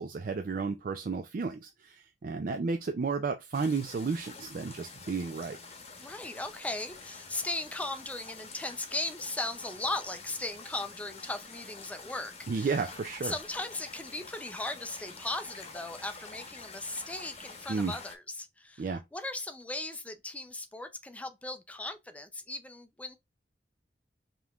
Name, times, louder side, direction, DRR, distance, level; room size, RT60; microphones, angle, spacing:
voice 1, 0.0-5.6 12.5-13.3 17.7-17.9 18.8-19.0, right 4 dB, 50° right, 0.4 m, -32 dB
sound 1, 3.5-18.1, left 4 dB, 40° left, 0.9 m, -48 dB
voice 2, 6.0-12.7 13.2-23.2, left 2 dB, 10° left, 0.5 m, -37 dB
5.2 x 3.0 x 2.4 m
head